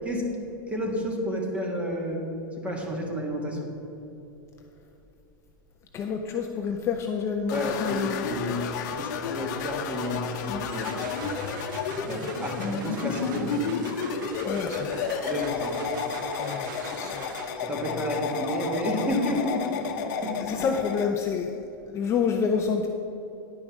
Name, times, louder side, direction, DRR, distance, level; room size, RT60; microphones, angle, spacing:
voice 1, 0.7-2.2 2.6-3.7 7.5-8.7 8.9-11.1 12.1-13.7 15.2-16.1 17.6-20.5, left 1 dB, 10° right, 1 dB, 1.5 m, -31 dB
voice 2, 5.9-8.3 14.4-15.1 16.4-17.3 20.1-22.9, left 6 dB, 25° left, 4 dB, 0.5 m, -29 dB
sound 1, 7.5-21.1, left 5 dB, 55° left, 0.9 m, -32 dB
sound 2, 10.5-17.8, right 5 dB, 60° right, 1.0 m, -42 dB
10.0 x 5.2 x 6.1 m, 3.0 s
hypercardioid pair, 135°, 11 cm